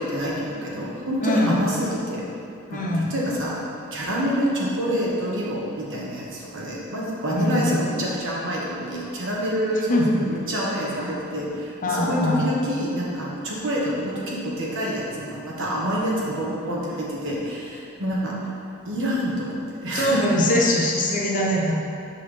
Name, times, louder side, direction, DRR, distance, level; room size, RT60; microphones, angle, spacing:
voice 1, 0.0-2.2 2.7-3.5 3.9-18.5 18.9-20.6, equal, 65° right, -4 dB, 1.2 m, -27 dB
voice 2, 1.2-1.6 2.7-3.2 7.3-7.8 9.9-10.1 11.8-12.5 19.9-21.7, left 1 dB, 40° left, -2 dB, 0.7 m, -22 dB
5.5 x 5.5 x 3.3 m, 2.6 s
head